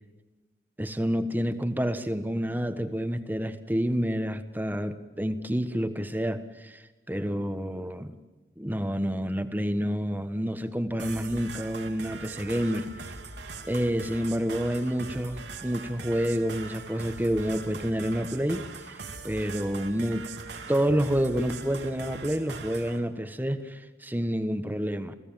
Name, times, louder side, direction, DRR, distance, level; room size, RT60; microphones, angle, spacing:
voice 1, 0.8-6.8 7.1-8.1 8.6-12.9 13.7-20.3 20.7-25.1, equal, 10° right, 9 dB, 1.3 m, -29 dB
sound 1, 11.0-23.0, right 4 dB, 90° right, 2.5 m, -41 dB
30.0 x 16.5 x 7.4 m, 1.2 s
head